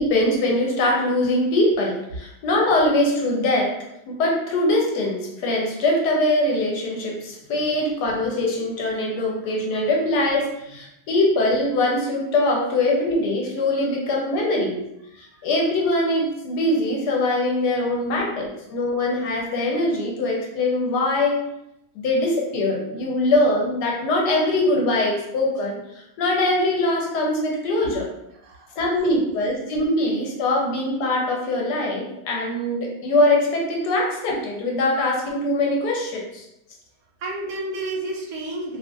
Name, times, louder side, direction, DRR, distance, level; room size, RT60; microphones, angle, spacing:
voice 1, 0.0-3.7 4.1-14.8 15.4-21.4 21.9-25.8 26.2-28.1 28.8-36.4, left 1 dB, 85° left, -1 dB, 1.3 m, -22 dB
voice 2, 28.4-28.8 29.0-29.2 37.2-38.8, right 2 dB, 65° right, -2 dB, 1.1 m, -31 dB
2.8 x 2.4 x 2.5 m, 0.83 s
omnidirectional pair, 1.7 m